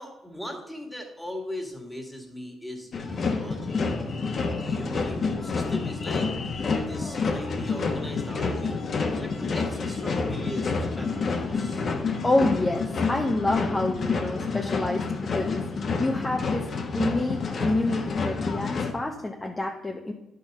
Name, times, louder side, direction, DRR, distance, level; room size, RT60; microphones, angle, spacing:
voice 1, 0.0-3.8 4.5-6.3 6.7-8.8 9.2-11.8, left 1 dB, ahead, 1 dB, 2.3 m, -39 dB
sound 1, 2.9-18.9, left 4 dB, 50° left, 1.3 m, -28 dB
voice 2, 12.2-15.0 15.3-15.6 16.0-20.1, left 2 dB, 20° left, 1 dB, 1.0 m, -27 dB
11.0 x 5.5 x 5.5 m, 0.90 s
cardioid pair, 90°, 0 cm